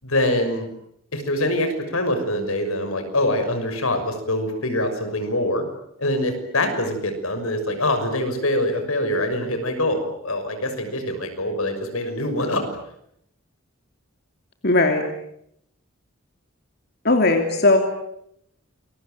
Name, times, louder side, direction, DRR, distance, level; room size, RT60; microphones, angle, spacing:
voice 1, 0.0-0.7 1.1-5.6 6.0-12.7, left 1 dB, 85° left, 7 dB, 6.3 m, -24 dB
voice 2, 14.6-15.0 17.0-17.8, left 2 dB, 50° left, 5 dB, 2.9 m, -17 dB
28.0 x 22.5 x 9.2 m, 0.76 s
head